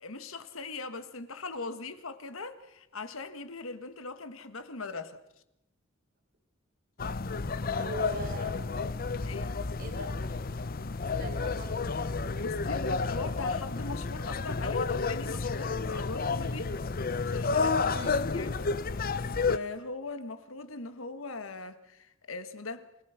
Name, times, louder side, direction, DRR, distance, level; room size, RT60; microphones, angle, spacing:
voice 1, 0.0-5.2 7.6-8.0 9.2-9.6 12.4-16.8 17.2-18.7 19.3-22.9, left 3 dB, 80° left, 1.5 m, -40 dB
sound 1, 7.0-19.6, left 4 dB, 45° left, 0.7 m, -31 dB
voice 2, 7.7-8.8 9.8-10.2 11.0-12.0 17.9-18.5, right 2 dB, 45° right, 4.7 m, -42 dB
28.5 x 19.0 x 5.8 m
head